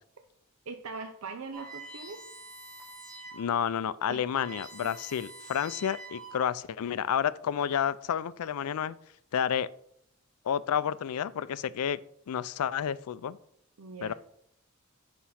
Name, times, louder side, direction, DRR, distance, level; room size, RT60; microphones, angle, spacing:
voice 1, 0.7-2.2 4.1-4.3 13.8-14.1, right 4 dB, 75° right, 5 dB, 0.6 m, -41 dB
sound 1, 1.5-3.5 3.9-4.0 4.2-6.6, right 2 dB, 20° right, 3.0 m, -46 dB
voice 2, 3.3-9.0 9.3-9.7 10.5-12.0 12.3-13.4 14.0-14.1, left 8 dB, 85° left, 17 dB, 0.4 m, -30 dB
7.5 x 5.8 x 4.2 m, 0.72 s
head